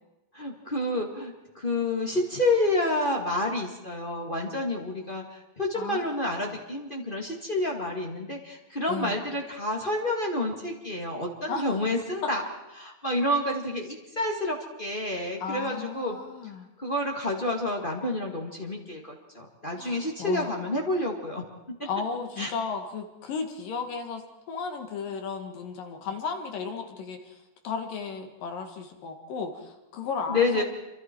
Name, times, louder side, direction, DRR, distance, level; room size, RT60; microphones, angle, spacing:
voice 1, 0.3-12.4 12.8-16.2 16.8-21.9 22.4-22.5 30.3-30.6, left 1 dB, 35° left, 0 dB, 0.8 m, -29 dB
voice 2, 5.7-6.3 8.9-9.2 11.5-11.8 15.4-16.7 19.8-20.6 21.9-24.2 24.5-30.6, left 5 dB, 60° left, 5 dB, 3.0 m, -35 dB
28.0 x 25.0 x 4.6 m, 1.0 s
omnidirectional pair, 4.9 m